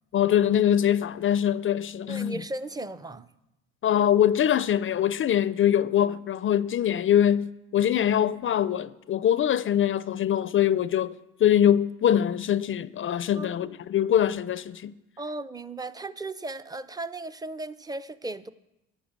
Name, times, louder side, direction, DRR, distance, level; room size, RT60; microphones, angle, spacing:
voice 1, 0.1-2.4 3.8-11.1 11.4-14.9, left 10 dB, 45° left, 0.4 m, -23 dB
voice 2, 2.1-3.3 13.3-13.7 15.2-18.5, right 2 dB, 15° right, 0.5 m, -36 dB
11.0 x 8.6 x 7.4 m
cardioid pair, 95°, 30 cm